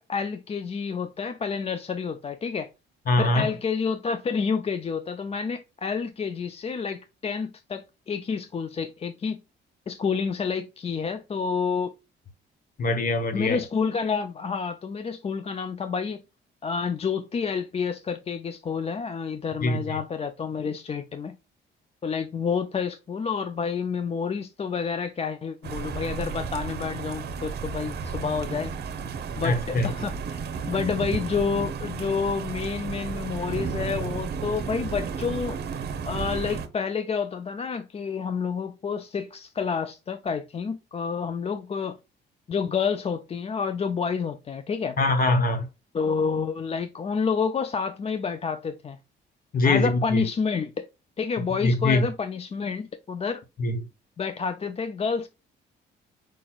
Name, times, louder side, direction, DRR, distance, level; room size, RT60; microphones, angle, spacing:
voice 1, 0.0-2.7 3.2-9.4 9.9-11.9 13.3-16.2 16.6-21.3 22.0-28.7 29.4-35.6 36.1-42.0 42.5-45.0 45.9-49.0 49.6-50.9 51.2-53.4 54.2-55.3, left 5 dB, 30° left, 0.4 m, -29 dB
voice 2, 3.1-3.5 12.8-13.6 19.6-20.0 29.4-29.9 45.0-45.7 49.5-50.3 51.6-52.1 53.6-53.8, left 2 dB, 45° left, 1.1 m, -23 dB
sound 1, 25.6-36.7, right 6 dB, 55° right, 0.8 m, -33 dB
4.9 x 4.3 x 2.3 m
cardioid pair, 90°, 20 cm